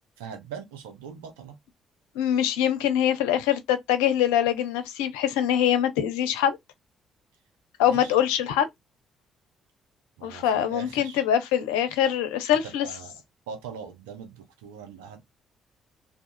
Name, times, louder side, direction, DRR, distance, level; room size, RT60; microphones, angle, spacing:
voice 1, 0.2-1.6 7.8-8.2 10.2-11.2 12.6-13.1 13.5-15.2, right 6 dB, 85° right, 0.7 m, -41 dB
voice 2, 2.2-6.6 7.8-8.7 10.2-12.9, left 10 dB, 85° left, 0.5 m, -23 dB
2.5 x 2.4 x 2.5 m
hypercardioid pair, 50°, 0 cm